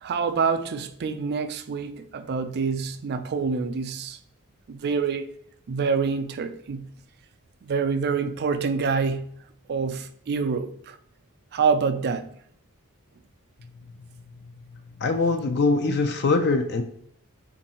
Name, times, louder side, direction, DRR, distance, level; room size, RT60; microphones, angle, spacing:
voice 1, 0.0-4.2 4.7-5.3 5.7-6.9 7.6-9.3 9.7-11.0 11.5-12.3, right 5 dB, 50° right, 0.4 m, -26 dB
voice 2, 15.0-16.8, left 3 dB, 50° left, 0.4 m, -22 dB
3.8 x 2.6 x 4.2 m
head